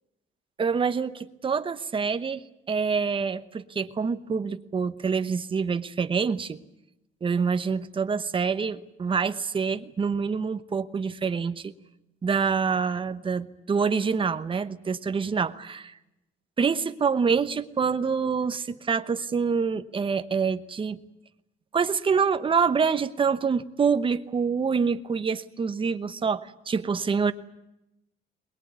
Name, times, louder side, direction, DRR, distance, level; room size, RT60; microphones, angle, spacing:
voice 1, 0.6-2.4 2.7-6.6 7.2-11.7 12.2-15.9 16.6-21.0 21.7-27.3, right 5 dB, 25° right, 11 dB, 1.0 m, -26 dB
22.5 x 20.5 x 9.5 m, 0.90 s
cardioid pair, 170°, 21 cm